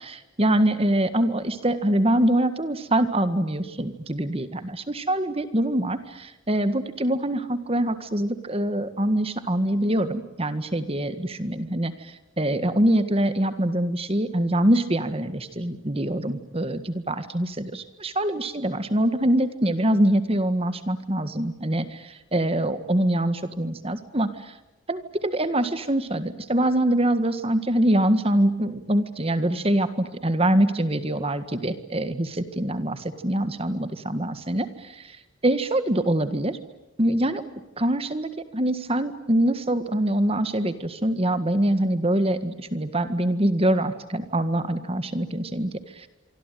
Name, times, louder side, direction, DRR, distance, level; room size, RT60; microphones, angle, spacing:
voice 1, 0.0-24.5 24.9-35.1 35.4-36.6 37.0-37.4 37.8-46.1, right 1 dB, 30° right, 11 dB, 1.7 m, -24 dB
26.0 x 25.0 x 9.3 m, 1.0 s
head